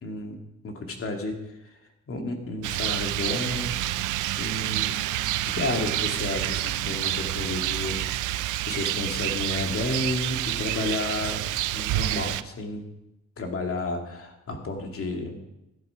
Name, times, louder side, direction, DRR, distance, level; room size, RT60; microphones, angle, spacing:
voice 1, 0.0-1.8 2.1-3.8 4.4-5.0 5.2-12.8 13.4-15.4, left 2 dB, 45° left, 3 dB, 2.5 m, -32 dB
Rain, 2.6-12.4, right 15 dB, 80° right, 0.6 m, -28 dB
14.0 x 8.8 x 5.8 m, 0.93 s
cardioid pair, 90°, 30 cm